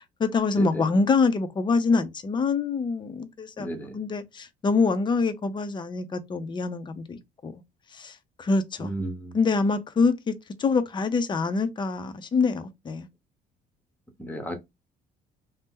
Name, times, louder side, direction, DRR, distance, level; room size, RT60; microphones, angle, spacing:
voice 1, 0.0-7.6 7.9-8.9 9.3-10.3 10.6-13.1, left 4 dB, 25° left, 0.6 m, -25 dB
voice 2, 3.6-4.0 8.8-9.3 14.2-14.5, right 1 dB, 10° left, 0.9 m, -33 dB
2.8 x 2.1 x 3.6 m
cardioid pair, 110°, 17 cm